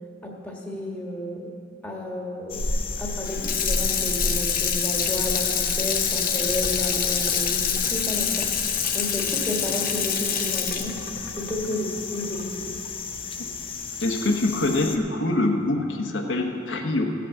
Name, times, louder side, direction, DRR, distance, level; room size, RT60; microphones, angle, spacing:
voice 1, 0.2-1.5 1.8-2.7 3.0-8.5 8.9-11.0 11.4-12.7, left 1 dB, 5° left, -2 dB, 1.5 m, -32 dB
sound 1, 2.5-15.0, left 3 dB, 30° left, 0.6 m, -32 dB
Water tap faucet / Sink (filling or washing), 3.2-12.4 12.8-12.9, left 8 dB, 50° left, 1.0 m, -26 dB
voice 2, 14.0-17.1, left 2 dB, 80° left, 1 dB, 1.1 m, -24 dB
15.0 x 6.0 x 7.1 m, 2.7 s
head